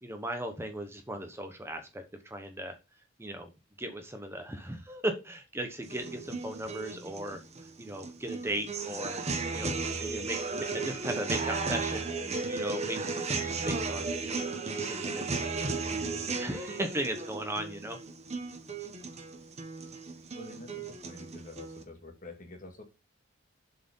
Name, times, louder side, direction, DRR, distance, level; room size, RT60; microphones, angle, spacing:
voice 1, 0.0-2.7 3.2-3.5 3.8-7.4 7.8-9.2 9.5-12.1 12.4-18.0, right 1 dB, 15° right, 1.1 m, -37 dB
sound 1, 5.8-21.8, right 4 dB, 35° right, 1.3 m, -35 dB
voice 2, 20.3-22.8, left 2 dB, 45° left, 2.1 m, -47 dB
7.5 x 4.7 x 5.5 m
head